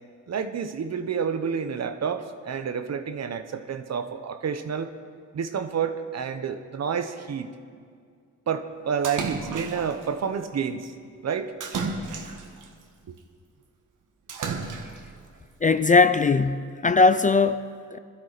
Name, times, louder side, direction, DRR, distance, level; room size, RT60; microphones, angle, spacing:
voice 1, 0.3-4.9 5.3-7.5 8.5-10.9 11.2-11.5 13.1-13.2, right 7 dB, 55° right, 9 dB, 1.0 m, -29 dB
Splash splatter, 9.0-10.0 11.6-12.7 14.3-15.1, right 4 dB, 70° right, 1.6 m, -32 dB
voice 2, 15.6-18.0, left 4 dB, 25° left, 12 dB, 0.4 m, -20 dB
21.5 x 13.0 x 4.1 m, 2.1 s
cardioid pair, 95°, 32 cm